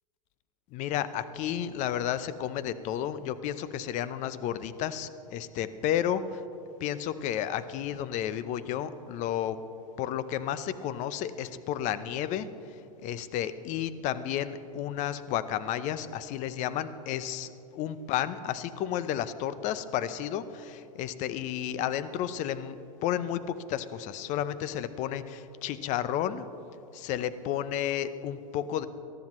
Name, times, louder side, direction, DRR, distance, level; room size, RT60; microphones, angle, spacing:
voice 1, 0.7-6.4 6.8-9.6 10.0-12.5 13.0-26.4 26.9-28.9, left 10 dB, 40° left, 13 dB, 0.7 m, -32 dB
19.0 x 13.0 x 3.1 m, 2.7 s
hypercardioid pair, 105°, 19 cm